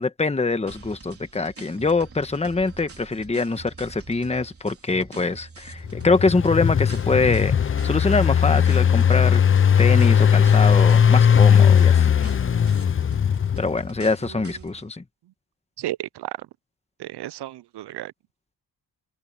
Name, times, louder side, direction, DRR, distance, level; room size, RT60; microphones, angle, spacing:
voice 1, 0.0-9.4 9.8-12.3 13.6-15.0, left 3 dB, 15° left, 1.2 m, -24 dB
sound 1, 0.7-14.9, right 4 dB, 30° right, 4.1 m, -45 dB
Engine, 5.8-13.9, left 8 dB, 30° left, 0.5 m, -18 dB
voice 2, 15.8-16.5 17.0-18.1, right 14 dB, 70° right, 0.5 m, -33 dB
wide cardioid pair, 120°, 42 cm